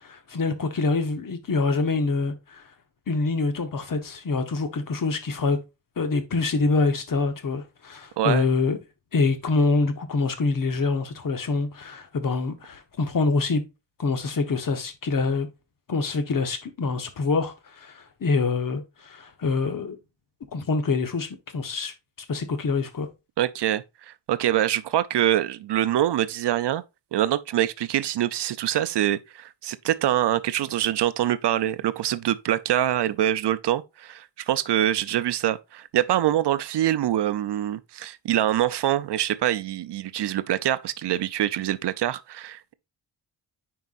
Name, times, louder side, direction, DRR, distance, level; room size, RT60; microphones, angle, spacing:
voice 1, 0.0-2.6 3.1-5.6 6.0-8.8 9.1-13.6 14.0-15.5 15.9-20.0 20.5-21.9 22.3-23.1, left 3 dB, 45° left, 1.1 m, -25 dB
voice 2, 8.2-8.5 23.4-26.8 27.1-42.7, right 12 dB, 65° right, 0.5 m, -25 dB
9.4 x 4.7 x 2.5 m
wide cardioid pair, 140°, 44 cm